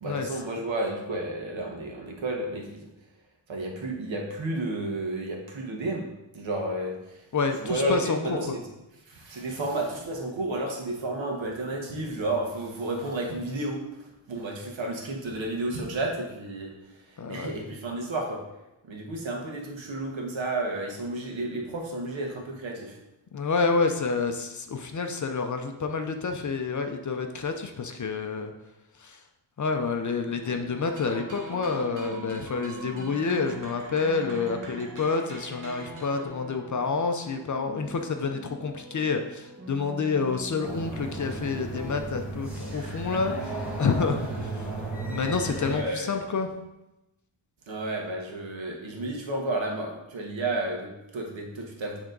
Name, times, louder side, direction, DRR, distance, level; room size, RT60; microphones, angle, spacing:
voice 1, 0.0-2.8 3.5-6.1 6.3-7.2 7.6-8.6 9.1-13.8 14.3-16.7 17.3-18.4 18.8-23.0 42.7-43.3 45.7-46.2 47.7-52.0, right 2 dB, 70° right, 0 dB, 1.5 m, -32 dB
voice 2, 7.3-8.5 17.2-17.8 23.3-28.5 29.0-29.2 29.6-44.6 45.1-46.5, left 4 dB, 40° left, 5 dB, 0.6 m, -28 dB
sound 1, 29.9-42.0, right 1 dB, 20° right, 1.5 m, -44 dB
sound 2, 30.8-36.3, right 2 dB, 40° right, 1.2 m, -44 dB
sound 3, 40.6-45.8, right 2 dB, 5° right, 1.7 m, -35 dB
9.3 x 3.5 x 3.9 m, 0.97 s
wide cardioid pair, 155°, 47 cm